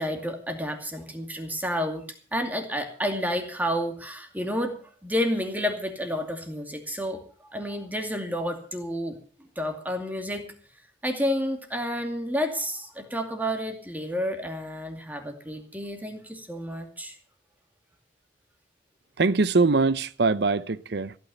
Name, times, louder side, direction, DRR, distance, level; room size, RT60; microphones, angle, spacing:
voice 1, 0.0-2.0 2.3-4.7 5.0-7.2 7.5-9.2 9.6-10.4 11.0-17.1, equal, 10° right, 2.4 m, -30 dB
voice 2, 19.2-21.2, right 3 dB, 60° right, 0.7 m, -22 dB
15.5 x 9.3 x 6.9 m
head